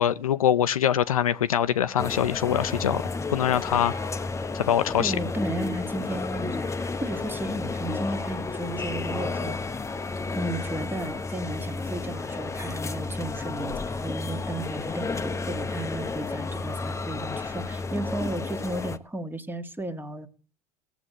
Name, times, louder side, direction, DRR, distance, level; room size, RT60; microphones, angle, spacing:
voice 1, 0.0-3.0 3.3-3.9 4.5-5.1, left 10 dB, 85° left, 0.6 m, -23 dB
sound 1, 2.0-19.0, left 3 dB, 15° left, 1.0 m, -32 dB
voice 2, 5.0-9.8 10.3-20.3, right 1 dB, 10° right, 1.9 m, -34 dB
17.5 x 8.3 x 7.6 m
hypercardioid pair, 75°, 18 cm